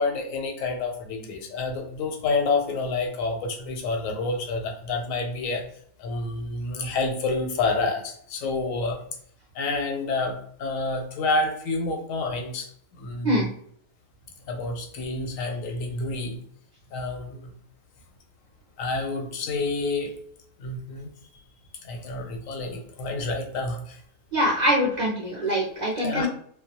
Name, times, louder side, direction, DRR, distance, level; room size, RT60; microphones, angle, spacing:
voice 1, 0.0-5.6 6.0-9.0 9.5-12.7 13.0-13.5 14.5-16.4 16.9-17.5 18.8-20.2 20.6-21.1 21.8-24.0 26.0-26.3, left 3 dB, 90° left, 4 dB, 1.0 m, -28 dB
voice 2, 24.3-26.3, equal, 60° right, -4 dB, 0.4 m, -23 dB
2.3 x 2.1 x 2.7 m, 0.63 s
omnidirectional pair, 1.3 m